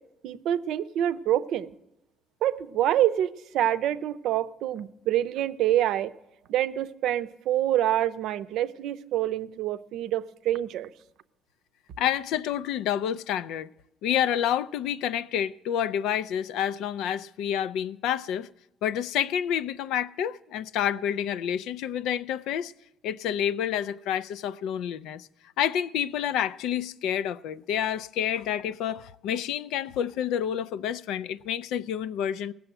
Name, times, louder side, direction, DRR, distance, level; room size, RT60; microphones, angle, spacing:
voice 1, 0.2-1.7 2.4-6.1 6.5-10.9, right 12 dB, 70° right, 0.6 m, -26 dB
voice 2, 12.0-13.7 14.0-18.5 18.8-22.7 23.0-25.3 25.6-32.5, left 9 dB, 85° left, 0.4 m, -29 dB
17.5 x 6.9 x 8.9 m
cardioid pair, 155°, 0 cm